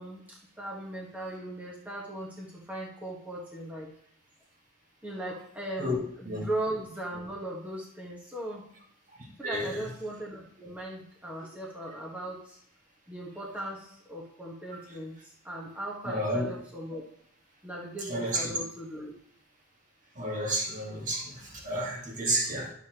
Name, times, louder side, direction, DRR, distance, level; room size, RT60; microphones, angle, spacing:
voice 1, 0.0-3.9 5.0-8.6 9.4-12.6 13.1-17.0 17.6-19.1, right 1 dB, 5° right, -4 dB, 1.5 m, -38 dB
voice 2, 9.4-9.8 16.0-16.5 18.1-18.5 20.2-22.7, right 1 dB, 35° right, -1 dB, 1.8 m, -31 dB
12.0 x 6.9 x 3.0 m, 0.65 s
head